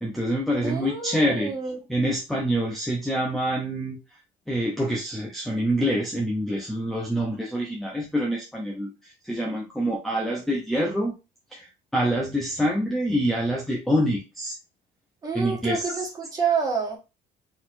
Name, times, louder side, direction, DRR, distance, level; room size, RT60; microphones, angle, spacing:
voice 1, 0.0-1.5 1.9-4.0 4.5-11.1 11.5-11.7 11.9-14.5 15.3-16.1, equal, ahead, -2 dB, 0.8 m, -26 dB
voice 2, 0.6-1.8 15.2-17.0, right 5 dB, 20° right, -3 dB, 1.7 m, -28 dB
4.5 x 4.1 x 2.7 m, 0.27 s
cardioid pair, 175°, 17 cm